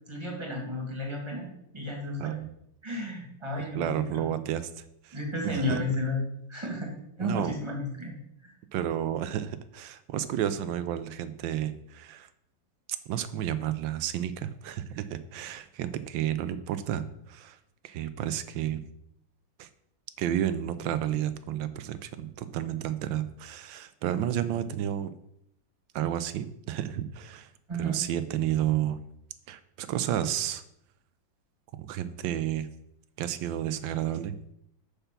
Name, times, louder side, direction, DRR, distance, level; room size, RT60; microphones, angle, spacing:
voice 1, 0.1-1.5 1.7-2.4 2.8-4.3 5.1-6.2 6.5-6.9 7.2-8.2 8.4-8.5 27.7-28.0, left 1 dB, 15° right, 0 dB, 1.9 m, -32 dB
voice 2, 2.2-2.5 3.7-5.2 5.4-5.8 7.2-7.5 8.7-12.3 13.1-17.6 17.8-18.8 19.6-19.7 20.2-25.1 25.9-27.5 27.8-29.0 29.5-30.6 31.7-32.7 33.2-34.3, right 11 dB, 85° right, 13 dB, 1.4 m, -31 dB
6.7 x 5.9 x 5.8 m, 0.76 s
omnidirectional pair, 2.0 m